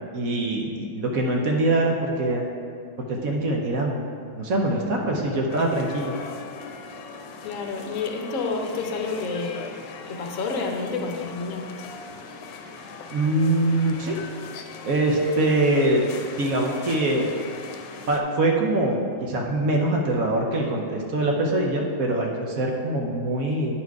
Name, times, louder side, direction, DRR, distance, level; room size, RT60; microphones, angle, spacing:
voice 1, 0.1-2.5 3.1-4.0 4.3-6.1 13.1-14.2 14.8-16.0 16.4-17.3 18.1-23.8, right 2 dB, 60° right, 0 dB, 1.0 m, -23 dB
sound 1, 5.5-18.2, left 5 dB, 75° left, 1.2 m, -40 dB
voice 2, 7.4-9.7 10.1-11.6, left 4 dB, 60° left, 2 dB, 1.0 m, -29 dB
9.7 x 4.4 x 4.6 m, 2.4 s
omnidirectional pair, 2.0 m